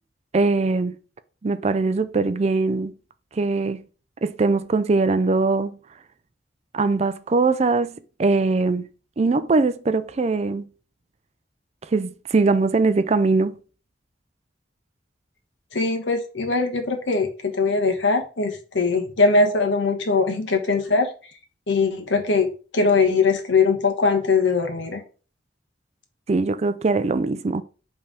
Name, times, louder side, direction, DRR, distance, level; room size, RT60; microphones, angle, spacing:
voice 1, 0.3-1.0 1.4-3.0 3.3-3.8 4.2-5.8 6.7-8.9 9.2-10.7 11.8-13.6 26.3-27.6, right 3 dB, 35° right, 0.4 m, -21 dB
voice 2, 15.7-21.1 21.7-25.0, left 4 dB, 85° left, 1.2 m, -21 dB
5.5 x 3.4 x 5.1 m
head